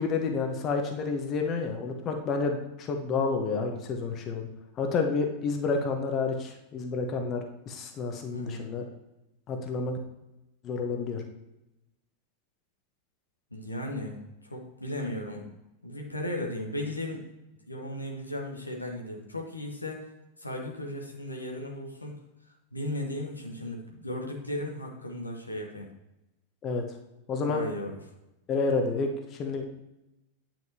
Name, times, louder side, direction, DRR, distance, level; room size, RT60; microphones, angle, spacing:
voice 1, 0.0-4.5 4.8-8.8 9.5-10.0 10.6-11.2 26.6-26.8 27.3-27.6 28.5-29.6, left 4 dB, 35° left, 4 dB, 1.1 m, -29 dB
voice 2, 8.3-8.7 13.5-14.2 14.4-15.4 15.8-17.2 17.7-20.0 20.4-22.2 22.7-25.9 27.4-28.0, left 1 dB, 90° left, 1 dB, 1.2 m, -36 dB
9.1 x 5.9 x 2.9 m, 0.93 s
figure-of-eight pair, 90°, 0 cm